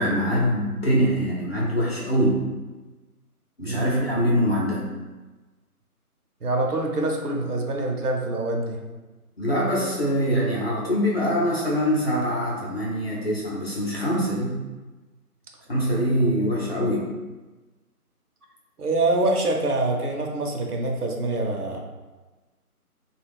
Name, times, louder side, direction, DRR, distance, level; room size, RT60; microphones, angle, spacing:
voice 1, 0.0-2.5 3.6-4.9 9.4-14.6 15.7-17.1, equal, 40° left, -5 dB, 0.7 m, -23 dB
voice 2, 3.7-4.0 6.4-8.8 18.8-21.8, right 2 dB, 75° right, 1 dB, 0.8 m, -25 dB
2.8 x 2.4 x 3.3 m, 1.2 s
figure-of-eight pair, 170°, 46 cm